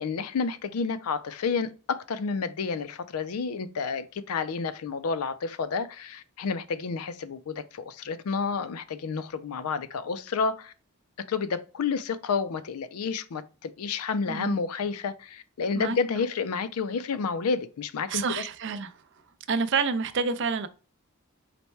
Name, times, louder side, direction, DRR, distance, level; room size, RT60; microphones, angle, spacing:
voice 1, 0.0-10.7 11.3-18.4, left 5 dB, 80° left, 0.4 m, -30 dB
voice 2, 14.3-14.6 15.7-16.0 18.1-18.9 19.5-20.7, right 5 dB, 55° right, 0.4 m, -28 dB
4.1 x 2.2 x 4.4 m
head